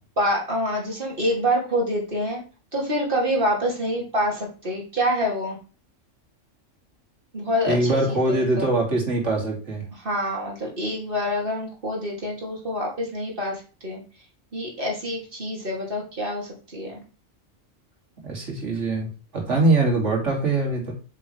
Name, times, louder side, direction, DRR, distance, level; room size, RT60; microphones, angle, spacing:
voice 1, 0.2-2.4 2.7-5.6 7.3-8.7 9.9-14.0 14.5-17.0, equal, 40° right, -2 dB, 2.8 m, -26 dB
voice 2, 7.7-9.8 18.2-20.9, right 2 dB, 65° right, 0 dB, 3.0 m, -23 dB
8.5 x 6.7 x 3.3 m, 0.35 s
omnidirectional pair, 1.4 m